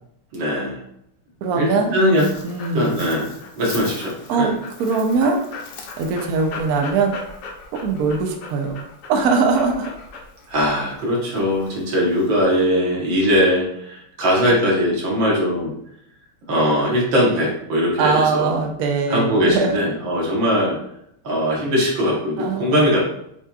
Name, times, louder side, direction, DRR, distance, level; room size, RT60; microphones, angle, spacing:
voice 1, 0.3-0.8 1.6-2.3 2.7-4.5 10.5-15.7 16.5-18.6 19.1-20.8 21.2-23.0, equal, 65° right, -4 dB, 2.0 m, -20 dB
voice 2, 1.4-2.0 2.4-3.2 4.3-4.5 4.8-5.4 6.0-7.2 7.8-9.9 18.0-19.8 22.4-22.7, right 4 dB, 80° right, 3 dB, 0.8 m, -21 dB
Dog, 1.6-12.4, left 4 dB, 65° left, 1.3 m, -38 dB
6.7 x 2.9 x 2.4 m, 0.74 s
omnidirectional pair, 2.4 m